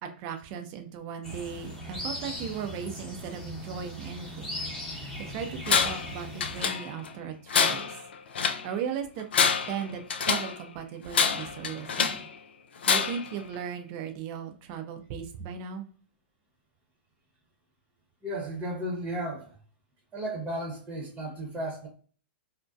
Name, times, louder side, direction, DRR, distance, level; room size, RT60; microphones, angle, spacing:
voice 1, 0.0-4.5 4.9-7.9 8.6-9.3 9.6-12.3 12.9-15.8, right 7 dB, 45° right, 5 dB, 0.5 m, -37 dB
sound 1, 1.2-6.7, left 1 dB, 10° left, 0.9 m, -39 dB
Tools, 5.7-6.1 6.4-7.1 7.5-8.7 9.2-10.6 11.1-12.3 12.8-13.3, left 6 dB, 75° left, 0.4 m, -26 dB
voice 2, 18.2-19.6 20.1-21.9, right 1 dB, 20° right, -2 dB, 0.9 m, -34 dB
2.6 x 2.1 x 2.2 m, 0.42 s
hypercardioid pair, 115°, 6 cm